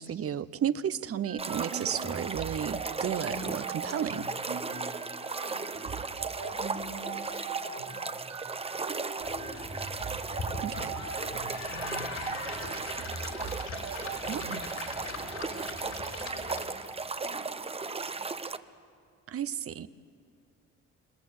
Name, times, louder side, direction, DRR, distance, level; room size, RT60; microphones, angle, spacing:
voice 1, 0.0-4.3 10.6-10.9 14.3-14.6 19.3-19.9, right 9 dB, 50° right, 15 dB, 0.8 m, -33 dB
sound 1, 1.2-14.5, right 5 dB, 85° right, 5.9 m, -42 dB
sound 2, 1.4-18.6, right 4 dB, 20° right, 0.8 m, -36 dB
voice 2, 5.0-14.5 15.0-18.6, left 4 dB, 90° left, -2 dB, 6.0 m, -53 dB
sound 3, 9.2-16.9, left 3 dB, 65° left, 4.4 m, -41 dB
27.0 x 21.0 x 8.6 m, 2.3 s
cardioid pair, 90°, 30 cm